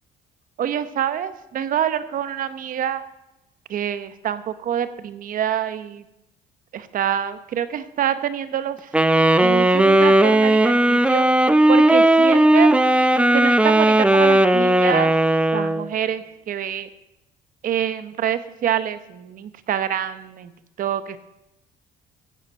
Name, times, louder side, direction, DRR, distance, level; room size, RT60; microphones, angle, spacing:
voice 1, 0.6-3.0 3.7-6.0 6.7-8.9 9.4-11.3 11.7-12.7 13.3-15.1 15.5-16.9 17.6-20.5 20.8-21.2, right 9 dB, 55° right, 12 dB, 0.9 m, -26 dB
Wind instrument woodwind instrument, 8.9-15.9, right 1 dB, 5° right, 0.5 m, -16 dB
15.0 x 7.9 x 5.4 m, 0.92 s
cardioid pair, 110°, 17 cm